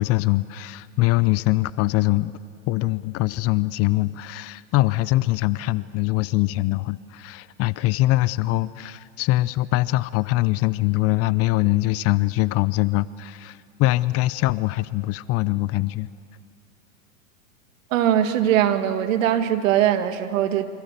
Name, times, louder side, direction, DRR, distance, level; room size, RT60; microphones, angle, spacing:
voice 1, 0.0-2.3 2.7-16.1, left 18 dB, 35° left, 18 dB, 0.6 m, -23 dB
voice 2, 17.9-20.7, right 10 dB, 65° right, 8 dB, 2.2 m, -21 dB
28.5 x 25.0 x 6.8 m, 2.4 s
hypercardioid pair, 110°, 42 cm